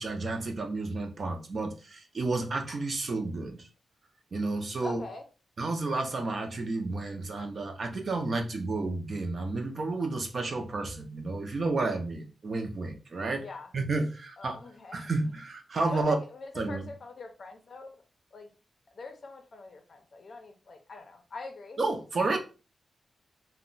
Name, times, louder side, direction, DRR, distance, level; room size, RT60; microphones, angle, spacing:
voice 1, 0.0-3.7 4.3-5.0 5.6-13.5 13.7-14.6 14.9-16.2 16.6-16.9 21.8-22.4, right 3 dB, 45° right, 4 dB, 0.5 m, -31 dB
voice 2, 4.8-5.2 13.4-13.7 14.4-15.1 15.9-18.0 18.3-18.5 18.9-21.8, left 3 dB, 45° left, 5 dB, 0.5 m, -43 dB
2.3 x 2.1 x 3.7 m, 0.34 s
wide cardioid pair, 145°, 0 cm